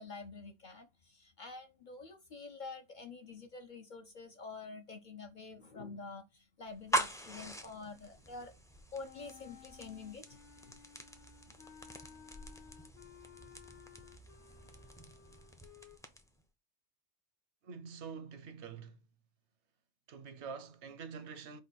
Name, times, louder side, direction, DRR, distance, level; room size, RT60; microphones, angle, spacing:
voice 1, 0.0-8.5 8.9-10.8 11.5-11.6, left 4 dB, 55° left, 0.5 m, -48 dB
sound 1, 6.7-16.4, right 1 dB, 5° left, 0.3 m, -42 dB
Wind instrument woodwind instrument, 9.0-16.0, left 8 dB, 75° left, 1.1 m, -57 dB
voice 2, 17.6-19.0 20.1-21.6, right 5 dB, 75° right, 0.9 m, -46 dB
4.9 x 2.2 x 4.0 m
omnidirectional pair, 1.2 m